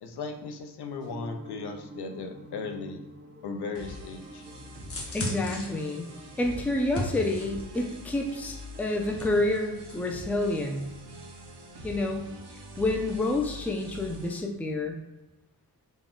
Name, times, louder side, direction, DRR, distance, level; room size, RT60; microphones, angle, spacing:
voice 1, 0.0-3.0 3.4-4.5, left 4 dB, 70° left, 6 dB, 0.6 m, -37 dB
sound 1, 1.0-7.2, equal, 30° right, 0.7 m, -48 dB
sound 2, 3.7-14.4, left 1 dB, 75° right, 0.8 m, -44 dB
sound 3, 4.9-7.8 8.3-10.0 10.2-10.4, left 1 dB, 35° left, 1.1 m, -37 dB
voice 2, 5.1-6.0 6.4-10.8 11.8-12.3 12.8-15.0, left 2 dB, 5° left, 2 dB, 0.4 m, -28 dB
4.0 x 2.3 x 3.7 m, 1.0 s
wide cardioid pair, 115°, 41 cm